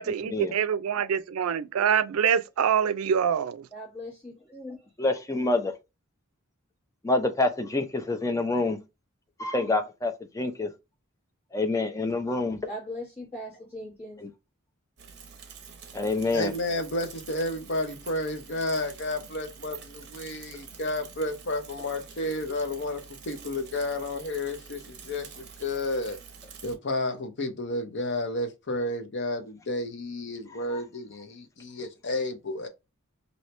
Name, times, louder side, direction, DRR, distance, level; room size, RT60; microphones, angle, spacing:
voice 1, 0.0-3.7, right 7 dB, 85° right, 0.4 m, -25 dB
voice 2, 3.7-4.9 12.7-14.2, left 1 dB, 30° left, 1.5 m, -39 dB
voice 3, 5.0-5.7 7.0-8.8 9.4-10.7 11.5-12.7 14.2-14.3 15.9-16.5 20.5-20.6 30.7-30.8, left 2 dB, 15° left, 0.5 m, -27 dB
Bicycle / Mechanisms, 15.0-26.8, right 6 dB, 50° right, 0.8 m, -47 dB
voice 4, 16.3-26.2 26.6-32.7, left 2 dB, 55° left, 0.7 m, -31 dB
2.9 x 2.7 x 3.1 m
head